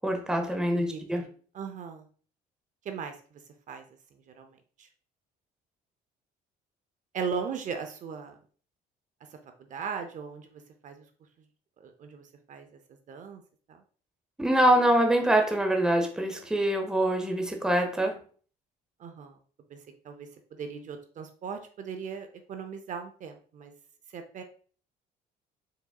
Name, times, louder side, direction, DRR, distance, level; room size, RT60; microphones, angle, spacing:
voice 1, 0.0-1.2 14.4-18.2, right 1 dB, 5° right, 0.7 m, -24 dB
voice 2, 0.8-1.3 1.5-2.1 2.8-3.4 3.7-3.8 4.1-4.9 7.1-8.4 9.6-11.0 11.8-13.4 13.7-13.8 19.0-19.4 19.7-19.8 20.0-23.7 24.1-24.4, right 6 dB, 50° right, 0.6 m, -38 dB
4.8 x 4.0 x 2.3 m
cardioid pair, 110°, 17 cm